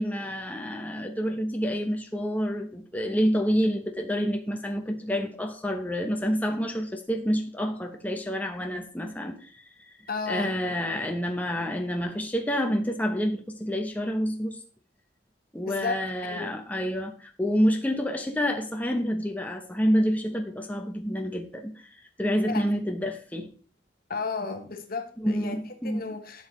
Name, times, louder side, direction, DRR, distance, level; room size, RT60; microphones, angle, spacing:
voice 1, 0.0-9.6 10.3-14.6 15.5-21.9 22.2-23.5 25.2-26.0, equal, 10° left, 0.9 m, -28 dB
voice 2, 10.1-10.5 15.6-16.5 22.4-22.7 24.1-26.5, left 4 dB, 50° left, 1.2 m, -33 dB
11.5 x 7.1 x 3.2 m
head